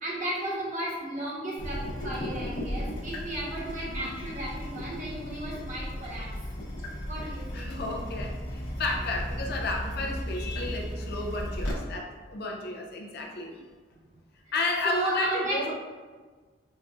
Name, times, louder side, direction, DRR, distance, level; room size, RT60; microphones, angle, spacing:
voice 1, 0.0-6.4 7.1-7.7 14.8-15.7, right 1 dB, 45° right, -6 dB, 1.1 m, -34 dB
Water tap faucet / Drip, 1.6-11.7, equal, 75° left, 1.0 m, -35 dB
voice 2, 7.5-13.6 14.5-15.7, left 2 dB, 55° left, 0 dB, 0.5 m, -32 dB
5.1 x 2.3 x 2.5 m, 1.4 s
head